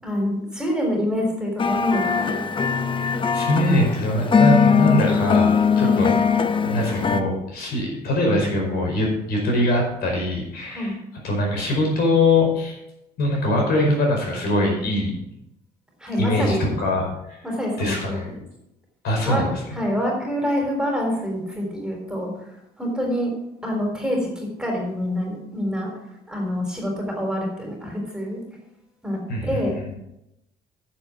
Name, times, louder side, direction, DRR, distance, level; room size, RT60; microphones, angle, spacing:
voice 1, 0.0-2.5 5.8-6.0 10.7-11.0 16.0-16.7 17.4-18.4 19.2-19.4 19.7-22.3 22.8-23.3 23.6-25.9 26.3-28.4 29.0-29.8, equal, 5° right, 0 dB, 3.9 m, -26 dB
sound 1, 1.6-7.2, left 6 dB, 30° left, 0.8 m, -20 dB
voice 2, 3.3-6.2 6.6-10.9 11.2-12.8 13.2-15.2 16.1-17.4 17.8-18.3 19.0-19.6 29.3-29.9, left 1 dB, 70° left, 0 dB, 5.0 m, -22 dB
10.5 x 7.4 x 6.3 m, 0.85 s
cardioid pair, 110°, 17 cm